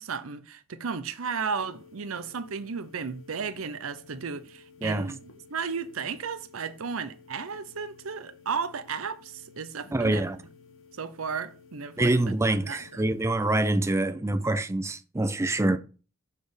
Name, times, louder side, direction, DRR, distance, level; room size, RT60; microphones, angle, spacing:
voice 1, 0.0-10.2 11.0-12.1 12.7-12.8, right 5 dB, 85° right, 0.7 m, -34 dB
sound 1, 1.6-13.3, left 4 dB, 75° left, 1.3 m, -53 dB
voice 2, 4.8-5.1 9.9-10.4 12.0-15.8, right 2 dB, 15° right, 0.5 m, -25 dB
7.1 x 4.2 x 5.1 m
head